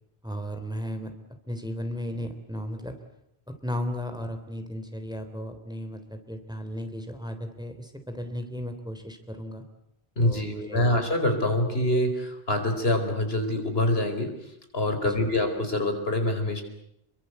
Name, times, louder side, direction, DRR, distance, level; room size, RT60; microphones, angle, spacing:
voice 1, 0.2-1.1 1.5-3.0 3.5-9.6 10.2-11.0 15.0-15.3, equal, 5° right, 7 dB, 3.3 m, -35 dB
voice 2, 10.2-14.3 14.7-16.6, left 1 dB, 75° left, 5 dB, 4.9 m, -25 dB
29.0 x 23.0 x 8.1 m, 0.79 s
omnidirectional pair, 1.0 m